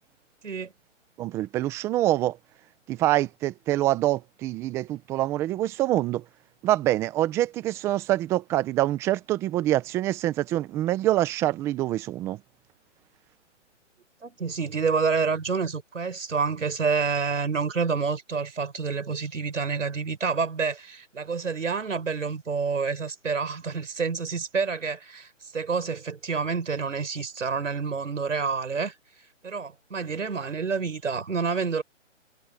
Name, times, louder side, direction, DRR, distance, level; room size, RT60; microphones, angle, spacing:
voice 1, 1.2-2.4 2.9-6.2 6.6-12.4, right 14 dB, 5° right, 0.7 m, -25 dB
voice 2, 14.2-28.9 29.4-31.8, right 5 dB, 75° right, 6.0 m, -28 dB
hypercardioid pair, 150°, 38 cm